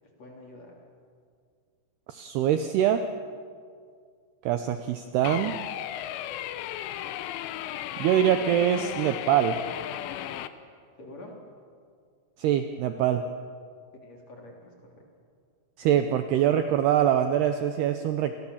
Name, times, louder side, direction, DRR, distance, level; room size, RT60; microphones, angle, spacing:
voice 1, 0.2-0.8 11.0-11.4 13.9-15.0, left 1 dB, 35° left, 0 dB, 4.3 m, -47 dB
voice 2, 2.1-3.1 4.5-5.6 8.0-9.6 12.4-13.2 15.8-18.4, right 10 dB, 75° right, 8 dB, 2.5 m, -24 dB
sound 1, 5.2-10.5, left 12 dB, 85° left, 3.5 m, -35 dB
30.0 x 23.5 x 7.2 m, 2.1 s
omnidirectional pair, 5.5 m